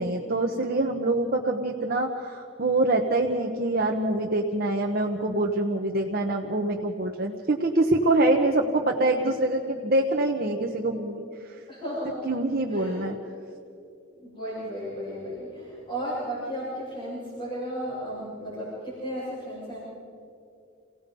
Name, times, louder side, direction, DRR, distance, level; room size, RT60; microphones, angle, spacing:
voice 1, 0.0-11.6 12.3-13.1, right 2 dB, 55° right, 1 dB, 1.1 m, -25 dB
voice 2, 11.7-12.2 12.7-13.0 14.1-19.8, equal, 30° left, -10 dB, 7.2 m, -34 dB
29.0 x 17.5 x 5.4 m, 2.5 s
head